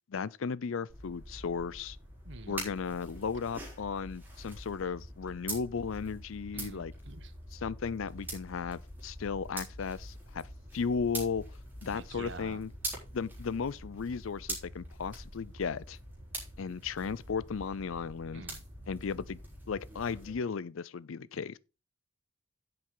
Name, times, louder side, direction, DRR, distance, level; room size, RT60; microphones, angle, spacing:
voice 1, 0.1-2.0 2.5-6.9 7.5-10.5 10.7-11.5 11.8-12.7 13.1-16.0 16.6-18.4 18.9-19.4 19.7-21.6, left 5 dB, 75° left, 0.5 m, -35 dB
sound 1, 0.9-20.3, right 1 dB, 10° right, 3.8 m, -44 dB
voice 2, 2.2-2.6 6.5-7.3 11.8-12.6 18.3-18.6 21.2-21.3, right 3 dB, 55° right, 1.1 m, -47 dB
10.0 x 7.7 x 3.9 m
head